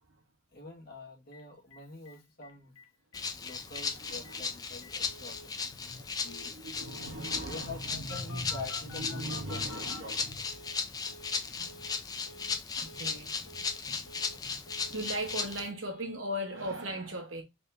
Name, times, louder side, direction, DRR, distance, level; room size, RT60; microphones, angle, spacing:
voice 1, 0.5-2.7 3.4-5.4 5.8-6.5 7.4-10.4, left 3 dB, 50° left, 1.5 m, -46 dB
Telephone, 1.3-1.4 1.7-1.8 2.1-2.2 2.4-2.9 3.1-3.2 3.5-3.8 4.2-4.3 4.8-5.5 6.3-6.5 6.8-7.5 8.1-10.8 11.1-11.4 11.7-12.0 12.3-12.6 12.9-13.2 13.5-13.8 14.1-14.4 14.7-15.6 15.9-16.2 16.5-16.7, left 1 dB, 80° left, 1.0 m, -50 dB
Rattle (instrument), 3.1-15.7, left 5 dB, 20° left, 0.4 m, -37 dB
voice 2, 6.5-8.4 8.9-10.4 11.6-11.7 12.8-13.3 14.9-17.4, right 1 dB, 70° right, 1.2 m, -38 dB
3.6 x 2.8 x 3.4 m
head